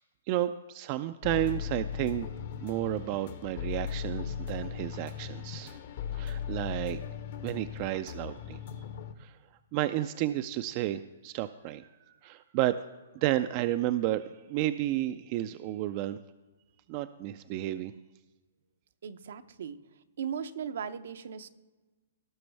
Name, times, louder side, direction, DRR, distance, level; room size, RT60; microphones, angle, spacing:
voice 1, 0.3-2.3 2.6-5.8 6.1-7.0 7.4-8.6 9.2-9.4 9.7-12.8 13.1-16.2 16.9-17.9, right 14 dB, 35° right, 11 dB, 0.3 m, -32 dB
sound 1, 1.2-9.1, left 8 dB, 50° left, 0.8 m, -38 dB
voice 2, 19.0-19.8 20.2-21.5, right 7 dB, 70° right, 11 dB, 0.6 m, -37 dB
17.5 x 6.1 x 3.4 m, 1.2 s
hypercardioid pair, 150°, 0 cm